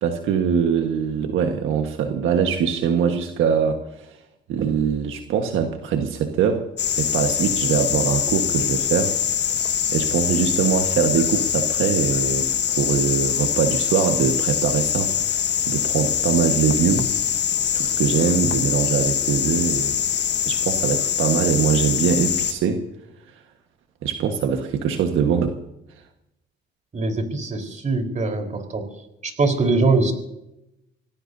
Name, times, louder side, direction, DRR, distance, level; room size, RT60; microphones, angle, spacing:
voice 1, 0.0-4.2 4.5-6.7 7.0-9.1 9.9-17.1 17.7-20.0 20.4-22.8 24.0-25.6, right 7 dB, 85° right, 4 dB, 1.5 m, -22 dB
sound 1, 6.8-22.5, left 9 dB, 60° left, 1.2 m, -23 dB
voice 2, 26.9-28.9 29.2-30.1, right 3 dB, 40° right, 4 dB, 4.3 m, -22 dB
25.5 x 18.0 x 2.8 m, 0.87 s
cardioid pair, 90°, 20 cm